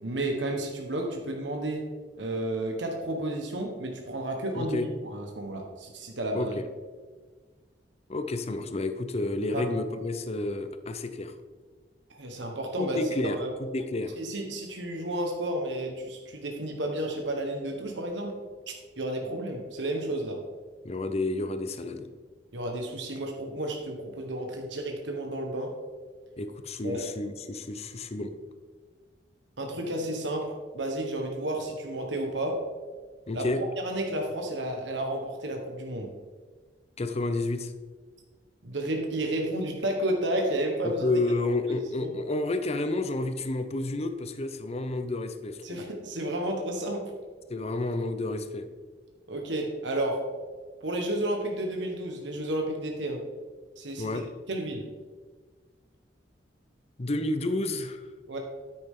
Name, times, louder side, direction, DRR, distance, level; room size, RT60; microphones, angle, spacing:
voice 1, 0.0-1.9 2.2-4.8 5.0-6.5 9.5-9.7 12.1-13.0 13.2-13.5 14.2-18.4 18.7-20.4 22.5-25.7 26.8-27.1 29.6-32.6 33.3-36.1 38.6-41.1 41.7-41.8 42.0-42.1 45.6-47.1 49.3-50.3 50.8-53.3 53.8-54.1 54.5-54.9 58.3-58.4, right 1 dB, 85° right, 2 dB, 1.4 m, -32 dB
voice 2, 4.5-4.9 6.3-6.6 8.1-11.3 12.8-14.2 20.8-22.1 26.4-28.3 33.3-33.6 37.0-37.7 40.8-45.8 47.5-48.7 54.0-54.3 57.0-58.0, left 2 dB, 35° left, 9 dB, 0.7 m, -30 dB
9.7 x 8.8 x 3.8 m, 1.4 s
head